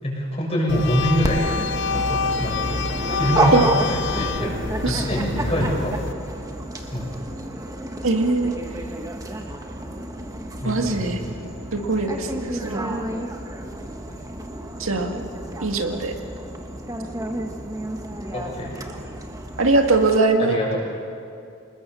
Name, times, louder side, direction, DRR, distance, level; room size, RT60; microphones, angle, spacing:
voice 1, 0.0-1.5 1.9-6.0 6.8-7.4 10.6-11.6 14.1-14.2 18.3-18.9 20.4-20.8, equal, 30° left, -3 dB, 7.1 m, -26 dB
sound 1, 0.7-6.1, left 4 dB, 55° left, 0.7 m, -27 dB
Dog, 1.2-20.2, right 1 dB, 15° right, 1.3 m, -30 dB
voice 2, 8.0-8.6 10.6-11.2 11.7-13.0 14.8-15.1 15.6-16.1 19.6-20.7, right 3 dB, 75° right, 3 dB, 2.0 m, -21 dB
27.0 x 20.5 x 7.1 m, 2.5 s
head